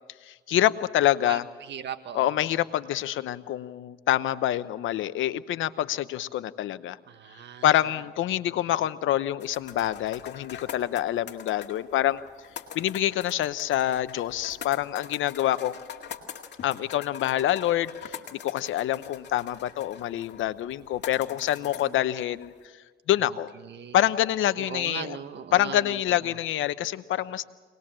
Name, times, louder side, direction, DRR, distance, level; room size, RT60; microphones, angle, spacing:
voice 1, 0.3-1.4 2.1-7.0 7.6-12.2 12.7-15.8 16.6-18.2 18.4-22.5 23.1-23.5 23.9-25.2 25.5-27.5, left 12 dB, 80° left, 14 dB, 0.9 m, -26 dB
voice 2, 1.2-2.3 7.1-7.6 21.7-22.0 23.6-24.0 24.6-26.4, right 8 dB, 65° right, 9 dB, 1.6 m, -39 dB
sound 1, 9.4-22.6, left 8 dB, 60° left, 2.1 m, -44 dB
24.0 x 20.0 x 7.6 m, 1.4 s
cardioid pair, 90°, 20 cm